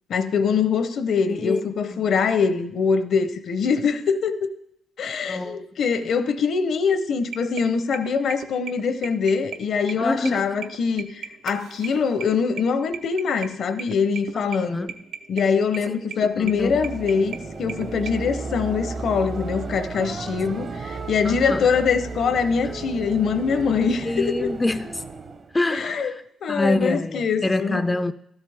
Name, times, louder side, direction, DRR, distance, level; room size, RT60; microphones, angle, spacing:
voice 1, 0.1-4.5 5.0-14.9 15.3-24.5 25.7-26.1 26.4-27.8, left 5 dB, 65° left, 0.7 m, -23 dB
voice 2, 1.3-1.7 5.3-5.6 10.0-10.4 14.3-14.9 15.9-16.9 20.0-20.3 21.2-21.6 24.0-25.0 25.5-26.2 26.5-28.1, left 2 dB, 15° left, 0.3 m, -26 dB
sound 1, 7.2-18.1, right 7 dB, 90° right, 0.7 m, -38 dB
sound 2, 16.2-25.6, right 4 dB, 45° right, 0.7 m, -34 dB
12.5 x 8.1 x 3.4 m
cardioid pair, 90°, 0 cm